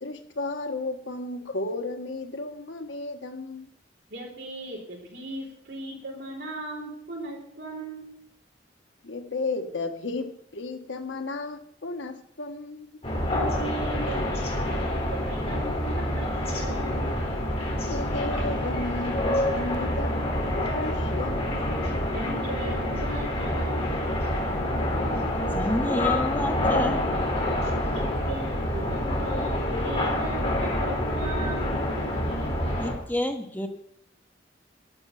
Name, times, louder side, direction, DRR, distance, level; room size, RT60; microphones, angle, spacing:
voice 1, 0.0-3.7 9.0-12.9 17.9-21.4, left 2 dB, 85° left, 6 dB, 1.4 m, -33 dB
voice 2, 4.1-8.1 13.3-17.0 22.1-23.9 27.9-31.7, right 1 dB, 65° right, 0 dB, 4.4 m, -38 dB
sound 1, 13.0-32.9, left 1 dB, 35° left, 3.8 m, -27 dB
voice 3, 25.5-27.0 32.8-33.7, left 1 dB, 10° left, 5 dB, 1.1 m, -29 dB
11.5 x 7.1 x 8.9 m, 0.72 s
head